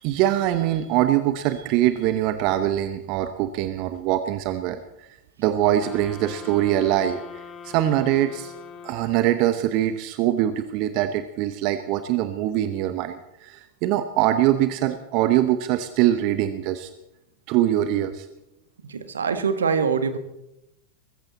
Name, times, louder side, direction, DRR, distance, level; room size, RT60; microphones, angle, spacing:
voice 1, 0.0-4.8 5.4-8.5 8.8-16.9 17.5-18.3, right 12 dB, 45° right, 11 dB, 1.0 m, -23 dB
sound 1, 5.8-9.7, left 6 dB, 30° left, 2.0 m, -42 dB
voice 2, 18.8-20.2, right 5 dB, 70° right, 10 dB, 1.5 m, -24 dB
21.5 x 15.0 x 4.3 m, 0.87 s
figure-of-eight pair, 90°, 0 cm